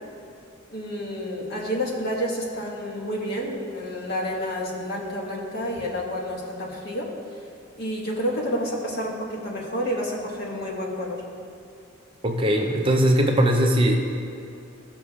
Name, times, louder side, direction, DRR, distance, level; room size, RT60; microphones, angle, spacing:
voice 1, 0.7-7.1 7.8-11.2, equal, 50° left, -3 dB, 1.5 m, -29 dB
voice 2, 12.2-14.0, equal, 25° right, 2 dB, 0.6 m, -20 dB
15.5 x 6.1 x 2.4 m, 2.6 s
head